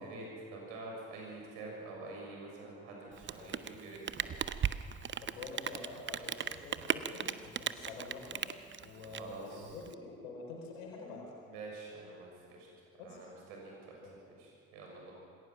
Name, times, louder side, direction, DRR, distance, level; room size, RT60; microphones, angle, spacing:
voice 1, 0.0-4.3 9.0-9.7 11.5-12.7 13.0-15.1, right 2 dB, 70° right, -2 dB, 6.7 m, -47 dB
Rain, 3.1-9.9, right 8 dB, 30° right, 0.8 m, -37 dB
voice 2, 5.2-8.4 8.8-11.3 13.0-13.2 14.0-14.1, left 3 dB, 70° left, -1 dB, 4.4 m, -47 dB
27.0 x 19.5 x 6.0 m, 2.2 s
figure-of-eight pair, 45°, 39 cm